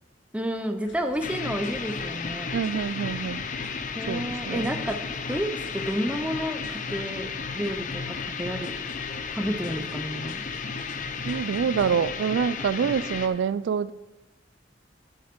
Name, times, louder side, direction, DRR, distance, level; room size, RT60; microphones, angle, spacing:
voice 1, 0.3-2.6 3.9-5.0 5.3-8.8 9.3-10.4, equal, 5° right, 6 dB, 0.6 m, -31 dB
sound 1, 0.8-12.0, left 1 dB, 85° left, 1.4 m, -49 dB
sound 2, 1.2-13.3, left 5 dB, 45° left, 0.6 m, -33 dB
voice 2, 2.5-3.5 4.1-4.8 11.2-13.9, right 6 dB, 90° right, 17 dB, 0.3 m, -26 dB
9.6 x 6.7 x 5.2 m, 1.1 s
head